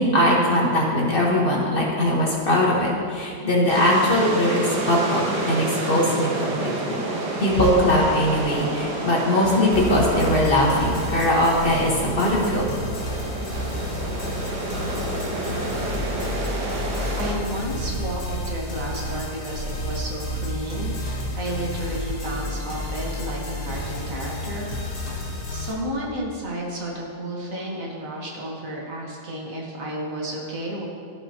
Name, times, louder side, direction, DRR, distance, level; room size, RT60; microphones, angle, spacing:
voice 1, 0.0-7.0 7.4-12.7, left 1 dB, 35° left, -3 dB, 1.4 m, -21 dB
sound 1, 3.7-17.4, right 2 dB, 90° right, 1.7 m, -30 dB
sound 2, 9.7-25.7, left 1 dB, 85° left, 2.7 m, -31 dB
voice 2, 16.5-25.0 25.5-30.8, right 1 dB, 55° right, -3 dB, 1.7 m, -32 dB
15.0 x 5.4 x 2.8 m, 2.3 s
omnidirectional pair, 1.7 m